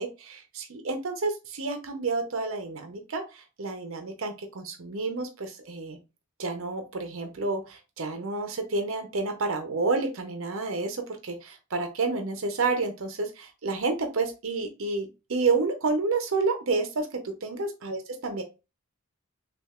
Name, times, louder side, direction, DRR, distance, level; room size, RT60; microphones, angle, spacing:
voice 1, 0.0-6.0 6.4-18.4, right 3 dB, 70° right, 6 dB, 0.7 m, -30 dB
6.4 x 2.5 x 2.4 m, 0.28 s
head